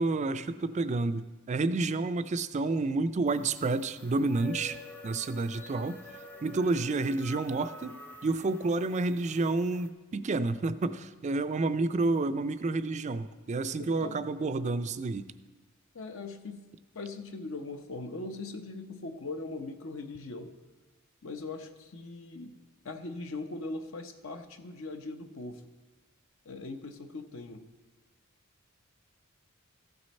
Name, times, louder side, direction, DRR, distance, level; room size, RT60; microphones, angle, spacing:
voice 1, 0.0-4.8 5.0-6.0 6.4-15.3, right 3 dB, 35° right, 12 dB, 0.4 m, -30 dB
sound 1, 3.3-9.9, left 2 dB, 10° left, 0.7 m, -48 dB
voice 2, 13.8-14.2 15.9-16.6 16.9-20.5 21.2-22.5 22.8-25.6 26.5-27.6, left 3 dB, 65° left, 7 dB, 0.8 m, -40 dB
14.5 x 6.3 x 4.2 m, 1.2 s
head